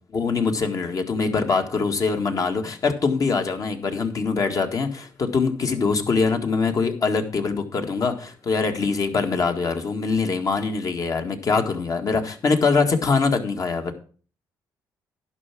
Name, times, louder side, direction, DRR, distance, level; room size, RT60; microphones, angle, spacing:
voice 1, 0.1-13.9, left 4 dB, 50° left, 5 dB, 1.8 m, -23 dB
11.0 x 5.9 x 6.0 m, 0.41 s
supercardioid pair, 70°, 8 cm